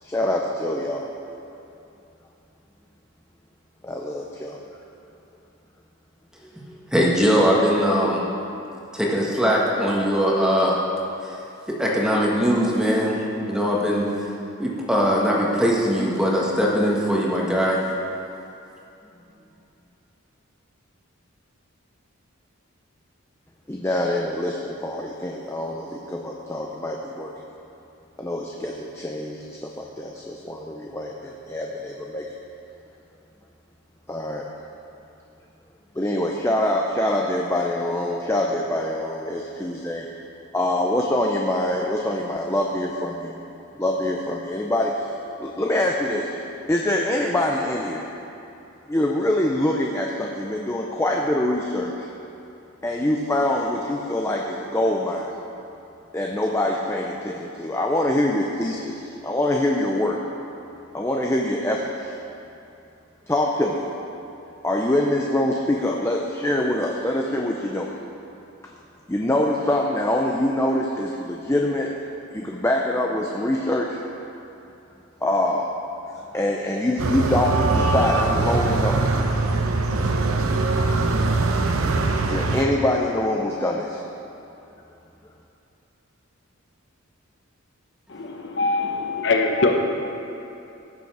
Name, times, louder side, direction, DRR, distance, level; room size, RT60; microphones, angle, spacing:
voice 1, 0.0-1.1 3.8-4.6 23.7-27.3 28.2-32.2 34.1-34.5 35.9-40.0 40.5-43.3 43.8-45.1 45.4-46.4 46.7-48.1 48.9-52.1 52.8-55.3 56.1-60.2 60.9-62.1 63.3-63.8 64.6-67.9 69.1-71.9 72.3-74.0 75.2-75.7 76.3-79.3 82.2-84.0, left 1 dB, 10° left, -1 dB, 0.6 m, -24 dB
voice 2, 6.9-8.2 8.9-10.8 11.2-11.4 11.7-14.1 14.6-17.8, equal, 5° right, -4 dB, 1.4 m, -21 dB
sound 1, 77.0-82.7, right 3 dB, 80° right, 0.8 m, -22 dB
voice 3, 88.1-89.8, left 3 dB, 55° left, 3 dB, 0.9 m, -22 dB
16.5 x 6.9 x 4.8 m, 2.8 s
head